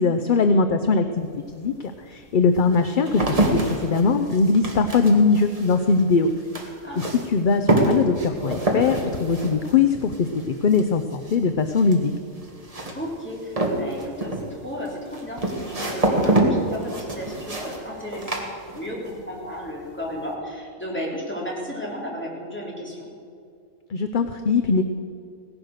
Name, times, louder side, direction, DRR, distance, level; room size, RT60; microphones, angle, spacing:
voice 1, 0.0-1.7 2.1-6.3 7.1-12.1 23.9-24.8, left 4 dB, 50° left, 7 dB, 0.7 m, -21 dB
sound 1, 1.2-1.3 2.0-19.2 19.5-20.0, right 1 dB, 30° right, 1.9 m, -27 dB
voice 2, 12.9-23.1, equal, 10° left, -4 dB, 3.3 m, -34 dB
17.0 x 11.0 x 6.5 m, 2.4 s
omnidirectional pair, 1.3 m